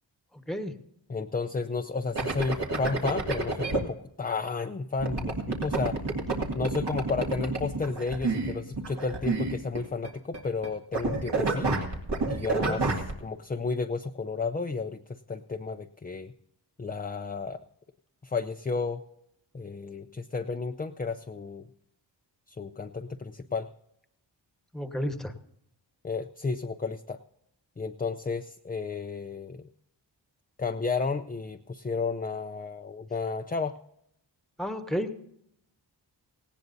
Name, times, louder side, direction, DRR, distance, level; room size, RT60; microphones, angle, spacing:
voice 1, 1.1-6.0 6.5-11.7 12.3-15.0 15.3-16.3 16.8-17.6 18.2-19.0 19.5-21.6 22.5-23.7 26.0-27.2 27.8-29.6 30.6-33.7, left 4 dB, 20° left, 6 dB, 0.5 m, -32 dB
sound 1, 2.1-3.8 5.0-10.1 10.3-10.7 10.9-13.1, right 3 dB, 65° right, 2.6 m, -29 dB
voice 2, 24.7-25.3 34.6-35.2, equal, ahead, 7 dB, 1.3 m, -31 dB
18.0 x 17.0 x 2.7 m, 0.77 s
wide cardioid pair, 100°, 44 cm